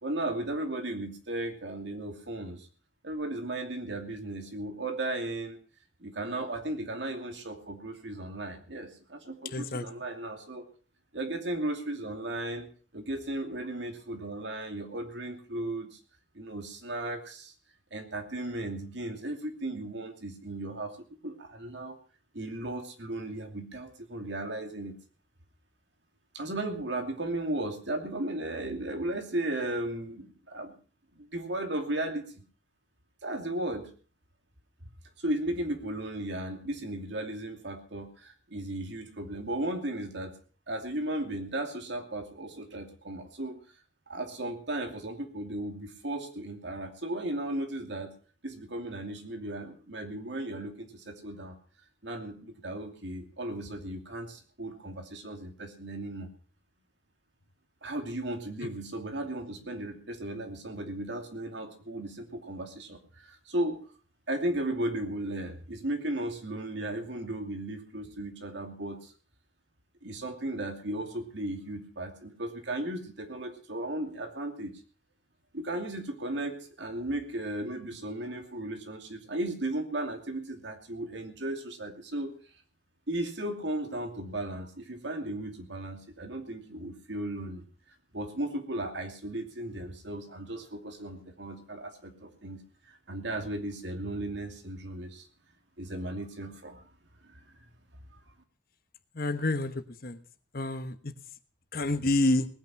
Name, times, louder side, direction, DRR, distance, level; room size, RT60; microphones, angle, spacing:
voice 1, 0.0-2.7 3.0-5.6 6.0-10.6 11.1-12.7 12.9-16.0 16.3-17.5 17.9-21.0 21.2-22.0 22.3-24.9 26.3-30.7 31.2-32.3 33.2-33.9 35.2-40.3 40.7-43.6 44.1-48.1 48.4-51.6 52.0-56.3 57.8-63.8 64.3-69.1 70.0-74.8 75.5-82.3 83.1-87.6 88.1-92.6 92.9-95.3 95.8-96.8 97.2-97.6 98.1-98.2, right 1 dB, 70° right, 5 dB, 2.6 m, -35 dB
voice 2, 9.5-9.8 99.2-100.2 100.5-101.1 101.7-102.5, left 2 dB, 50° left, 10 dB, 1.1 m, -28 dB
19.5 x 9.3 x 5.9 m, 0.40 s
head